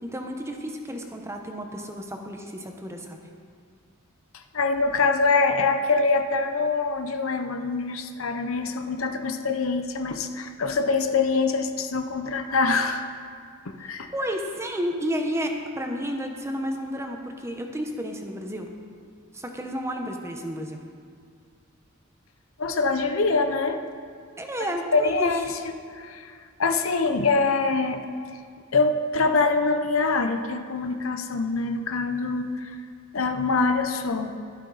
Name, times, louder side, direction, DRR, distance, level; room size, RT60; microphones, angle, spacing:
voice 1, 0.0-3.2 13.8-18.7 19.3-20.8 24.4-25.3, equal, 15° right, 3 dB, 0.9 m, -31 dB
voice 2, 4.5-13.1 13.7-14.1 22.6-23.8 24.9-25.5 25.9-26.3 26.6-28.0 28.7-32.7 33.1-34.3, left 4 dB, 75° left, 7 dB, 0.8 m, -24 dB
12.0 x 11.5 x 4.1 m, 2.2 s
head